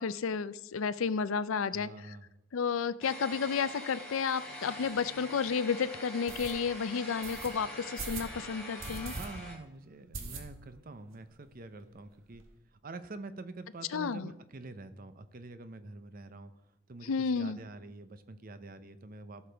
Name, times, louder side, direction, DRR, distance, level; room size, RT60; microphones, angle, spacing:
voice 1, 0.0-2.2 2.5-9.1 13.9-14.3 17.0-17.6, left 6 dB, 70° left, 15 dB, 0.4 m, -32 dB
voice 2, 1.7-2.3 9.1-12.4 12.7-16.5 16.9-19.5, right 2 dB, 40° right, 11 dB, 0.6 m, -46 dB
sound 1, 3.0-9.6, left 1 dB, 5° left, 2.3 m, -44 dB
sound 2, 4.9-5.0 5.4-5.5 6.3-6.5 7.2-7.5 8.0-8.3 8.8-9.3 9.6-9.7 10.1-10.8 11.1-11.2 11.5-11.6 11.8-12.5, right 3 dB, 70° right, 1.4 m, -41 dB
15.5 x 6.7 x 3.4 m, 0.89 s
head